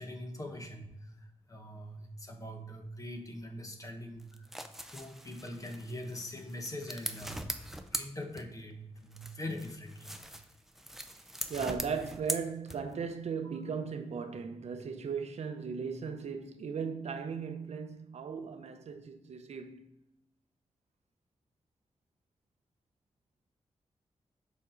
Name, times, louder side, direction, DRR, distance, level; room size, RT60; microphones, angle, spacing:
voice 1, 0.0-4.5 4.9-10.2 13.4-13.6, left 1 dB, 30° left, 1.2 m, -43 dB
sound 1, 4.2-8.8 9.1-13.1, equal, 5° right, 0.5 m, -41 dB
voice 2, 11.5-19.9, right 6 dB, 80° right, 0.7 m, -37 dB
7.1 x 4.3 x 3.8 m
wide cardioid pair, 105°, 11 cm